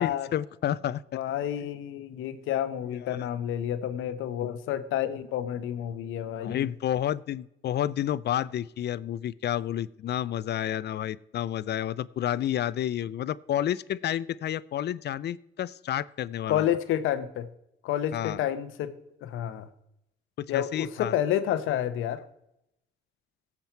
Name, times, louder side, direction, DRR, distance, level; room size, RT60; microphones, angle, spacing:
voice 1, 0.0-1.0 3.0-3.3 6.4-16.6 18.1-18.4 20.5-21.1, left 11 dB, 55° left, 19 dB, 0.5 m, -30 dB
voice 2, 1.1-6.7 16.5-17.5 17.8-18.9 19.2-19.7 20.5-22.2, left 11 dB, 90° left, 12 dB, 1.0 m, -29 dB
17.5 x 7.5 x 4.5 m, 0.83 s
cardioid pair, 90°, 20 cm